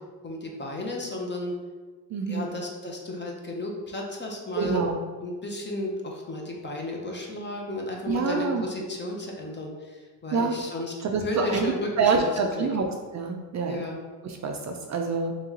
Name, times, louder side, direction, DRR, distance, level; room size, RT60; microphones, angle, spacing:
voice 1, 0.2-1.5 2.3-4.8 5.2-12.3 12.6-12.7 13.7-14.0, left 1 dB, 25° left, 0 dB, 0.7 m, -33 dB
voice 2, 2.1-2.5 4.6-5.0 8.1-8.6 10.3-10.6 11.0-12.9 13.1-13.8 14.2-15.3, right 4 dB, 45° right, 2 dB, 0.4 m, -26 dB
3.1 x 3.0 x 3.6 m, 1.4 s
cardioid pair, 95°, 42 cm